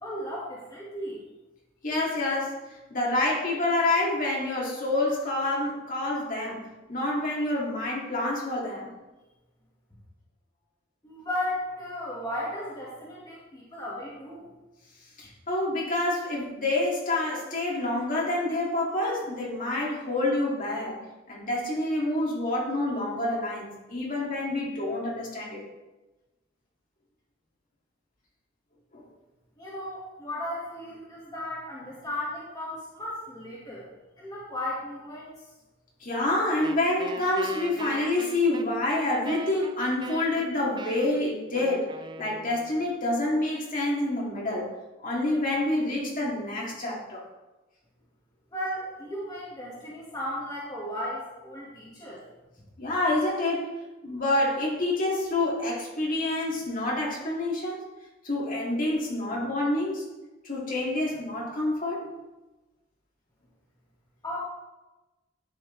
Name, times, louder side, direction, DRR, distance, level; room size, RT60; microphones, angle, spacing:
voice 1, 0.0-1.2 11.0-14.5 29.6-33.9 34.2-35.3 48.5-52.2 64.2-64.4, left 1 dB, 20° left, -7 dB, 1.8 m, -35 dB
voice 2, 1.8-2.6 2.9-6.6 6.9-8.9 15.2-21.0 21.3-25.6 28.9-29.0 36.0-41.9 42.2-44.7 45.0-47.2 52.8-53.7 54.0-57.8 58.2-60.0 60.4-62.1, left 2 dB, 45° left, -3 dB, 2.3 m, -27 dB
Wind instrument woodwind instrument, 36.6-42.9, right 3 dB, 25° right, 0.4 m, -41 dB
11.0 x 6.1 x 3.2 m, 1.1 s
head